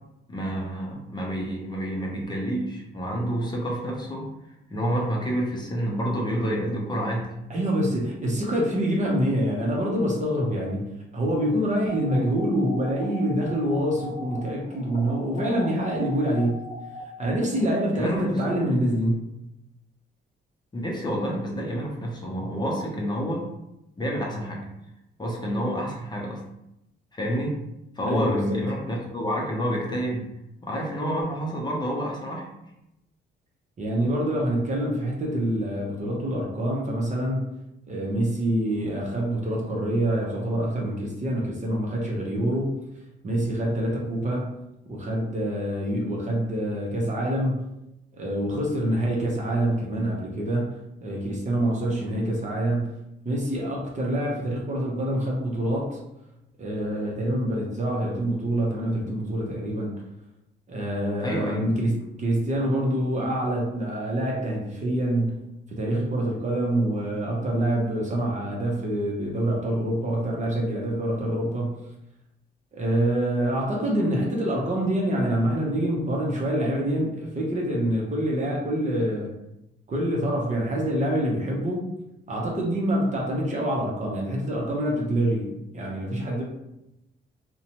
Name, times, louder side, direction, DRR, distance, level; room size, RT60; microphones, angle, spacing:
voice 1, 0.3-4.3 4.7-7.3 17.9-18.5 20.7-23.5 24.0-24.7 25.2-26.4 27.1-27.6 28.0-30.2 30.6-32.5 61.2-61.8, equal, 20° left, -2 dB, 0.6 m, -28 dB
voice 2, 7.5-10.9 11.1-16.7 17.2-19.3 28.0-28.6 33.8-37.4 37.9-42.8 43.2-44.5 44.9-47.6 48.2-52.9 53.2-56.0 56.6-59.9 60.7-71.7 72.7-79.3 79.9-81.8 82.3-86.4, right 1 dB, 35° right, -2 dB, 0.8 m, -26 dB
sound 1, 11.9-17.7, equal, 75° left, 0.7 m, -41 dB
2.6 x 2.2 x 2.9 m, 0.88 s
cardioid pair, 90°, 20 cm